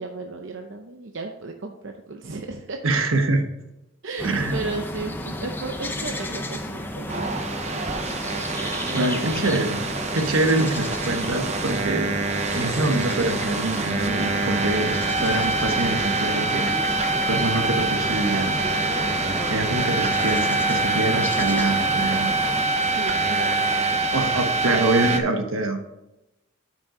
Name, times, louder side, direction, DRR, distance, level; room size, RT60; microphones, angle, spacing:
voice 1, 0.0-2.8 4.0-7.5 8.8-9.1 9.3-9.4 22.8-24.0, right 3 dB, 65° right, 4 dB, 0.7 m, -35 dB
voice 2, 2.8-3.4 4.2-4.6 8.9-9.8 10.1-12.1 12.5-16.6 17.3-18.6 19.5-22.3 22.8-22.9 24.1-25.8, right 2 dB, 85° right, 5 dB, 1.2 m, -25 dB
sound 1, 4.2-22.7, left 1 dB, 10° left, 0.6 m, -33 dB
sound 2, 7.1-25.2, right 3 dB, 35° right, 0.7 m, -25 dB
9.0 x 6.2 x 3.8 m, 0.92 s
head